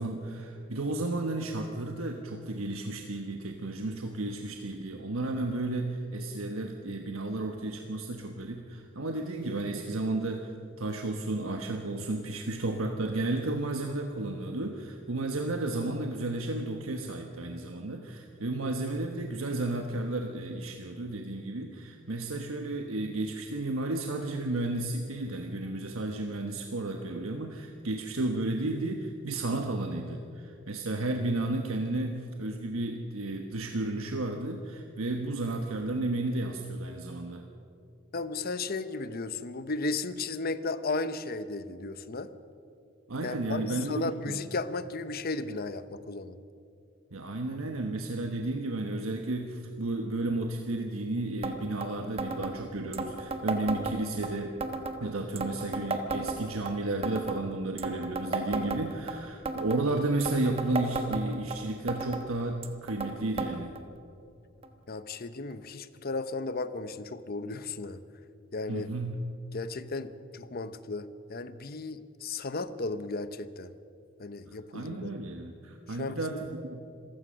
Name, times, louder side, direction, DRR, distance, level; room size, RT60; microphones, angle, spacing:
voice 1, 0.0-10.5 10.8-37.4 43.1-44.4 47.1-54.5 55.0-63.7 68.7-69.3 74.5-76.8, right 2 dB, 85° right, 3 dB, 1.2 m, -33 dB
voice 2, 38.1-42.3 43.2-46.4 64.9-68.0 68.5-68.9 69.5-73.7 74.2-75.1 75.9-76.4, left 3 dB, 45° left, 13 dB, 0.8 m, -35 dB
sound 1, 51.4-51.5 51.8-51.9 52.2-52.5 52.9-54.3 54.6-55.0 55.4-56.7 57.0-57.4 57.8-59.1 59.5-59.8 60.2-61.6 61.9-62.2 62.6-63.1 63.4-63.5 63.8-63.9 64.6-64.7 65.5-65.6, right 3 dB, 30° right, 1.4 m, -33 dB
26.5 x 15.5 x 6.4 m, 2.6 s
head